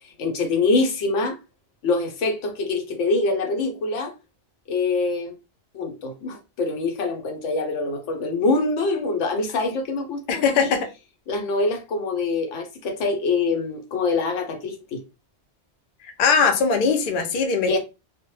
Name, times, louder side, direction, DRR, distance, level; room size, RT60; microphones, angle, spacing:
voice 1, 0.0-1.4 1.8-4.1 4.7-5.3 5.7-10.7 11.3-15.0 17.7-17.8, left 3 dB, 85° left, 1.0 m, -24 dB
voice 2, 10.3-10.9 16.2-17.8, left 5 dB, 60° left, 0.6 m, -20 dB
2.1 x 2.1 x 3.0 m
omnidirectional pair, 1.2 m